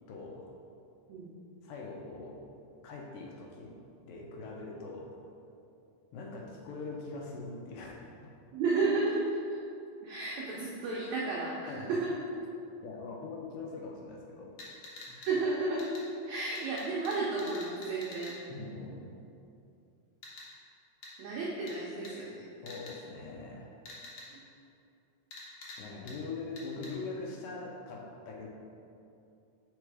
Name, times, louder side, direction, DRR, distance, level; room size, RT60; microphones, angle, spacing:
voice 1, 0.1-0.5 1.6-2.4 2.8-3.8 4.1-5.2 6.1-8.3 11.7-11.9 12.8-14.6 15.1-15.2 18.5-19.1 22.6-23.7 25.8-28.5, left 3 dB, 80° left, 0 dB, 2.2 m, -42 dB
voice 2, 8.5-9.6 10.0-12.1 15.2-15.8 16.3-18.4 21.2-22.5 24.3-24.4, right 3 dB, 85° right, -5 dB, 1.6 m, -32 dB
sound 1, 14.6-15.3 15.8-16.0 16.5-18.3 20.2-20.4 21.0-21.1 21.7-21.8 22.0-22.1 22.7-22.9 23.8-24.3 25.3-25.8 26.1-26.2 26.6-26.9, left 2 dB, 65° left, 1.9 m, -46 dB
4.7 x 4.4 x 4.7 m, 2.6 s
omnidirectional pair, 4.0 m